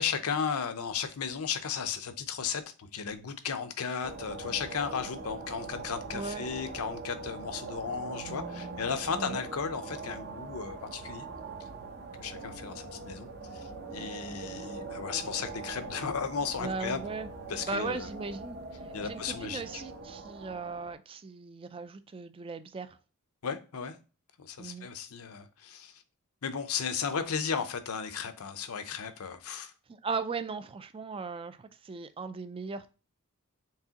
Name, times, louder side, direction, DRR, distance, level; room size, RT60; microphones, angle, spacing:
voice 1, 0.0-11.2 12.2-17.0 17.5-18.1 18.9-19.8 23.4-24.0 24.4-26.0 26.4-29.7, left 6 dB, 80° left, 0.6 m, -35 dB
sound 1, 4.0-20.9, right 3 dB, 50° right, 0.7 m, -42 dB
voice 2, 6.1-6.4 9.2-9.4 16.6-17.3 17.7-18.6 18.8-23.0 24.6-24.9 29.9-32.9, right 4 dB, 25° right, 0.3 m, -37 dB
4.7 x 3.4 x 2.8 m
head